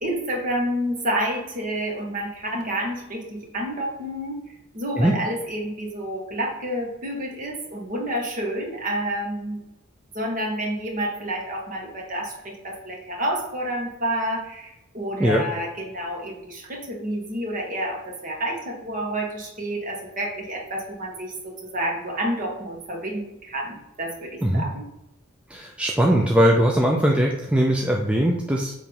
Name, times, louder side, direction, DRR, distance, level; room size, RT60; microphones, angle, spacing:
voice 1, 0.0-4.4 4.7-9.6 10.1-24.9, right 1 dB, 40° right, -1 dB, 1.6 m, -29 dB
voice 2, 25.5-28.7, equal, 5° right, -1 dB, 0.5 m, -20 dB
6.9 x 3.2 x 5.4 m, 0.91 s
head